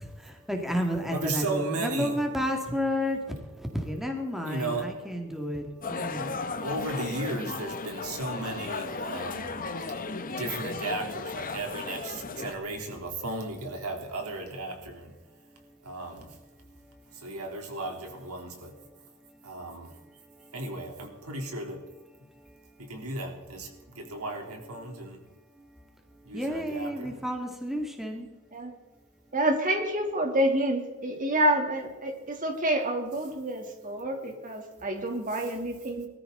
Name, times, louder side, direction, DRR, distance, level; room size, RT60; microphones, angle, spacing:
voice 1, 0.5-3.2 3.9-5.6 5.9-6.3 26.3-28.3, equal, ahead, 2 dB, 2.1 m, -31 dB
voice 2, 1.1-2.3 4.5-4.9 6.6-9.5 10.3-15.1 15.8-16.4 17.1-18.7 19.4-19.9 20.5-21.8 22.8-25.2 26.2-27.1 35.3-35.5, right 2 dB, 80° right, 2 dB, 3.4 m, -35 dB
sound 1, 5.8-12.5, left 4 dB, 40° left, 1.1 m, -35 dB
voice 3, 29.3-36.1, right 1 dB, 40° right, 2 dB, 2.9 m, -28 dB
21.5 x 14.0 x 3.9 m, 1.1 s
head